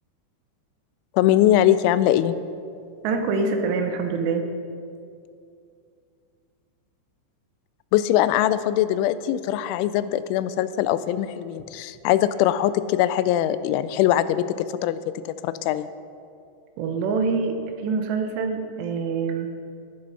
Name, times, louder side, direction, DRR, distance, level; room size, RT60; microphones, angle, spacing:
voice 1, 1.1-2.4 7.9-15.0 15.4-15.9, left 12 dB, 85° left, 14 dB, 2.9 m, -21 dB
voice 2, 3.0-4.5 16.8-19.5, right 4 dB, 75° right, 5 dB, 2.8 m, -25 dB
13.0 x 11.0 x 5.5 m, 2.4 s
omnidirectional pair, 5.5 m